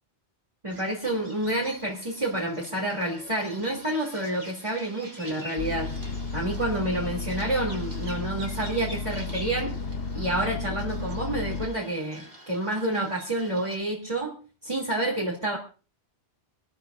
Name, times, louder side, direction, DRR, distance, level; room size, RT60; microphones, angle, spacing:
voice 1, 0.6-5.9 6.3-9.7 10.1-14.3 14.6-15.6, right 1 dB, 25° right, -3 dB, 3.0 m, -29 dB
Bird vocalization bird call bird song, 0.7-13.8, equal, 65° right, 6.0 m, -46 dB
sound 1, 5.6-11.7, left 4 dB, 60° left, 1.0 m, -33 dB
26.5 x 12.5 x 2.6 m, 0.35 s
omnidirectional pair, 1.1 m